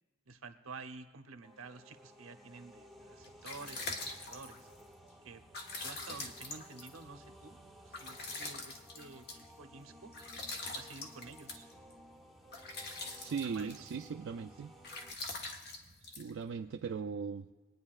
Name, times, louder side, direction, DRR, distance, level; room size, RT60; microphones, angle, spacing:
voice 1, 0.3-3.9 4.2-4.7 5.2-5.4 5.8-7.6 7.9-10.1 10.7-11.7 13.1-13.9 14.2-14.3, right 4 dB, 85° right, 8 dB, 0.8 m, -50 dB
sound 1, 1.4-15.1, equal, ahead, 0.8 m, -57 dB
sound 2, 3.0-17.0, left 2 dB, 55° left, 1.3 m, -45 dB
voice 2, 13.1-14.7 16.0-17.5, right 6 dB, 65° right, 5 dB, 0.4 m, -39 dB
23.0 x 9.5 x 2.4 m, 1.3 s
head